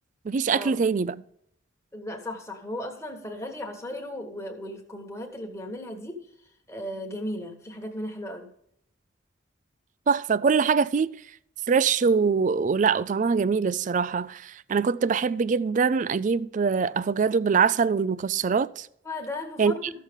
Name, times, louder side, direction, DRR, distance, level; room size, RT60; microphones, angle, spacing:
voice 1, 0.3-1.2 10.1-11.1 11.7-18.9 19.6-19.8, right 5 dB, 40° right, 0.3 m, -23 dB
voice 2, 1.9-6.3 6.7-8.5 19.0-19.8, left 1 dB, 15° left, 1.4 m, -36 dB
14.5 x 6.4 x 3.6 m
head